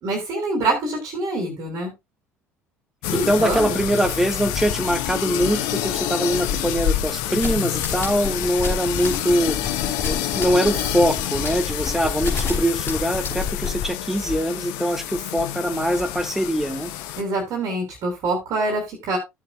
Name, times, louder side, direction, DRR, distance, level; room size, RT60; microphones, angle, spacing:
voice 1, 0.0-1.9 3.1-3.8 17.2-19.2, right 2 dB, 45° right, 3 dB, 3.2 m, -25 dB
sound 1, 3.0-17.2, left 11 dB, 60° left, 1.0 m, -27 dB
voice 2, 3.1-9.6 10.0-16.9, equal, 5° right, 8 dB, 1.4 m, -23 dB
sound 2, 7.4-13.8, left 5 dB, 30° left, 4.1 m, -27 dB
15.5 x 6.8 x 2.3 m, 0.20 s
figure-of-eight pair, 60°, 8 cm